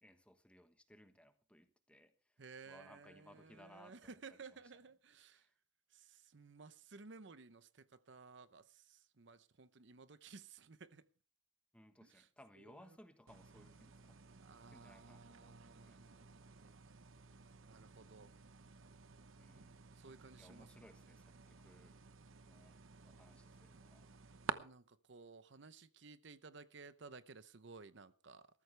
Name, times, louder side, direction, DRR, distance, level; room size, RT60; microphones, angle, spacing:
voice 1, 0.0-2.4 2.7-4.1 5.4-5.5 11.7-14.2 14.7-16.0 19.4-20.1 20.4-22.0 22.4-22.7 23.0-24.1, equal, 5° left, 1.3 m, -63 dB
voice 2, 2.4-5.5 5.9-11.0 12.0-12.3 12.6-13.0 14.4-17.1 17.7-18.3 20.0-20.9 24.5-28.5, right 4 dB, 60° right, 0.8 m, -57 dB
sound 1, 13.3-24.5, right 5 dB, 90° right, 0.9 m, -52 dB
20.0 x 14.0 x 3.4 m
head